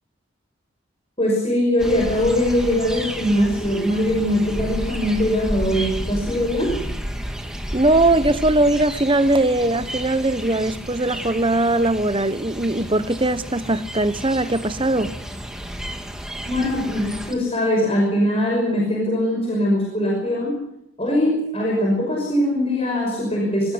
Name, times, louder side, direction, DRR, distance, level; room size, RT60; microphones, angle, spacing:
voice 1, 1.2-6.7 16.5-20.6 21.0-23.7, left 1 dB, 30° left, 5.7 m, -21 dB
sound 1, 1.8-17.3, equal, 5° right, 2.1 m, -32 dB
voice 2, 7.7-15.1, right 2 dB, 25° right, 1.0 m, -20 dB
24.5 x 16.0 x 7.9 m
head